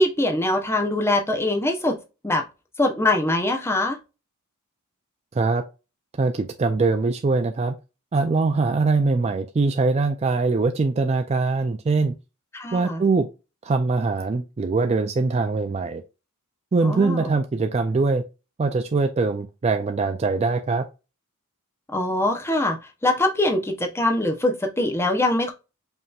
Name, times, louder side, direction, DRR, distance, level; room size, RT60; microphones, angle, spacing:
voice 1, 0.0-2.0 2.2-2.4 2.8-4.0 12.5-13.0 16.8-17.3 21.9-22.8 23.0-25.5, left 1 dB, 10° left, 0.7 m, -22 dB
voice 2, 5.3-5.6 6.2-7.7 8.1-12.1 12.7-13.3 13.6-16.0 16.7-18.2 18.6-20.9, right 3 dB, 30° right, 0.3 m, -22 dB
5.3 x 2.9 x 2.3 m
head